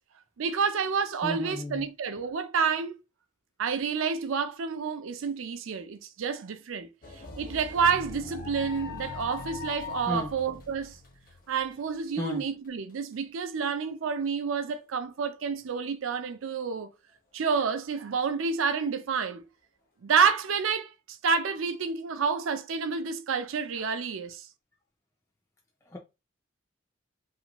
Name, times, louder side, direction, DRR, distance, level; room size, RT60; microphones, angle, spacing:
voice 1, 0.4-3.0 3.6-6.9 7.4-11.0 11.5-16.9 17.3-19.4 20.0-24.5, right 6 dB, 80° right, 0.4 m, -29 dB
voice 2, 1.2-1.9 10.1-10.3 12.2-12.4 25.9-26.0, left 1 dB, 15° left, 0.3 m, -33 dB
sound 1, 7.0-13.1 13.6-13.7 14.9-15.1, left 7 dB, 40° left, 0.7 m, -43 dB
sound 2, 7.7-11.6, left 3 dB, 80° left, 0.6 m, -44 dB
2.5 x 2.5 x 2.9 m
head